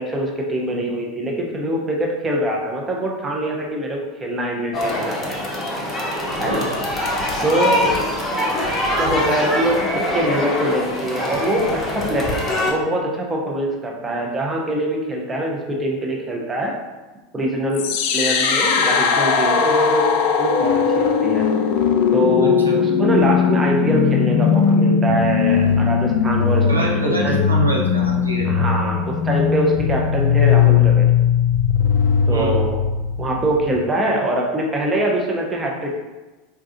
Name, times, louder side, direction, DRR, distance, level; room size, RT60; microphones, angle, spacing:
voice 1, 0.0-5.2 6.4-6.7 7.4-7.9 9.0-16.7 17.3-20.1 20.4-21.5 22.1-27.4 28.4-31.1 32.3-32.8 33.2-36.0, right 1 dB, 20° right, -1 dB, 0.6 m, -23 dB
sound 1, 4.7-12.7, left 1 dB, 30° left, 0.7 m, -23 dB
voice 2, 6.4-6.8 22.4-22.8 26.7-28.5 32.3-32.6, right 1 dB, 90° right, -3 dB, 0.5 m, -25 dB
sound 2, 17.7-33.8, left 7 dB, 55° left, 0.3 m, -18 dB
4.1 x 2.3 x 2.5 m, 1.2 s
figure-of-eight pair, 80°, 0 cm